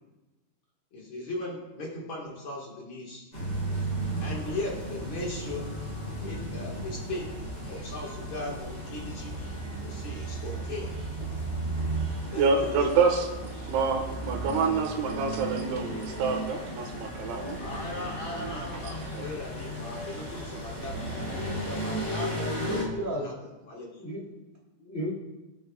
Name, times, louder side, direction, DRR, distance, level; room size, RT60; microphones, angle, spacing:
voice 1, 0.9-3.2 4.2-5.8 6.2-7.3 7.7-9.4 9.8-10.9 12.3-12.9 17.6-23.9, left 2 dB, 75° left, -3 dB, 1.1 m, -38 dB
sound 1, 3.3-22.8, equal, 15° left, 2.9 m, -37 dB
sound 2, 3.4-14.5, right 3 dB, 25° right, 1.7 m, -36 dB
voice 2, 12.4-13.3 13.7-17.6 18.3-18.7 19.1-19.3, right 4 dB, 90° right, 2 dB, 3.9 m, -27 dB
voice 3, 22.3-23.3 24.0-24.4 24.8-25.1, equal, 50° left, -4 dB, 0.7 m, -34 dB
22.0 x 9.1 x 2.4 m, 1.1 s
omnidirectional pair, 5.2 m